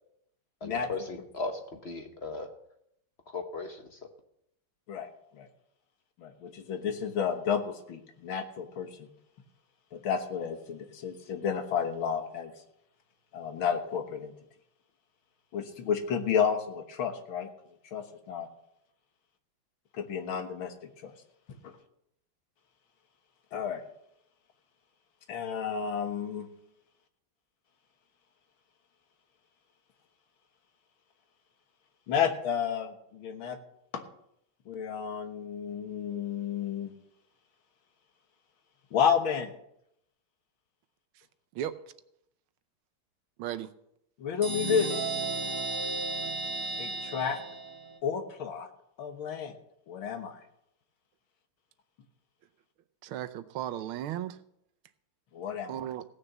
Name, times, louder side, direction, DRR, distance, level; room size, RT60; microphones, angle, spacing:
voice 1, 0.6-2.5 3.3-4.1, left 3 dB, 45° left, 6 dB, 0.9 m, -37 dB
voice 2, 6.2-9.1 9.9-12.5 13.3-14.3 15.5-17.5 17.9-18.5 19.9-20.7 21.0-21.1 21.6-21.7 23.5-23.8 25.3-26.5 32.1-33.6 33.9-34.0 34.7-36.9 38.9-39.5 44.2-44.9 46.8-47.4 48.0-48.7 49.0-49.5 49.9-50.4 55.3-55.9, left 7 dB, 75° left, 6 dB, 2.1 m, -31 dB
voice 3, 43.4-43.7 53.0-54.4 55.7-56.0, right 11 dB, 85° right, 11 dB, 1.6 m, -35 dB
sound 1, 44.4-48.0, right 3 dB, 10° right, 2.4 m, -34 dB
16.5 x 6.6 x 7.2 m, 0.76 s
omnidirectional pair, 2.3 m